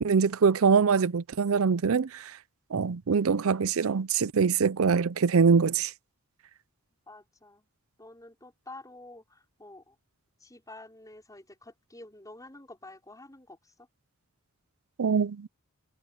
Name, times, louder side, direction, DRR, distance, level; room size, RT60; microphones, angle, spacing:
voice 1, 0.0-2.4 2.7-5.9 15.0-15.5, right 5 dB, 70° right, 0.5 m, -24 dB
voice 2, 7.1-7.7 8.0-10.0 10.4-13.9, left 2 dB, 15° left, 5.6 m, -49 dB
head